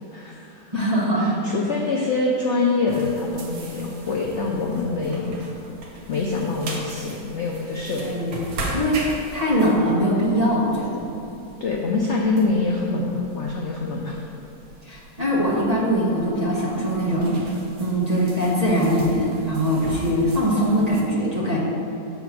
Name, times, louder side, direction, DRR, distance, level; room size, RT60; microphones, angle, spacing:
voice 1, 0.1-0.8 1.1-5.4 6.1-8.2 11.6-14.2, left 3 dB, 65° left, -2 dB, 0.7 m, -25 dB
voice 2, 0.7-1.4 8.0-9.0 9.3-11.0 14.8-17.4 17.8-21.6, equal, 25° right, -6 dB, 1.1 m, -22 dB
sound 1, 2.9-21.0, right 2 dB, 65° right, 1.5 m, -38 dB
6.9 x 4.2 x 6.0 m, 2.9 s
omnidirectional pair, 2.0 m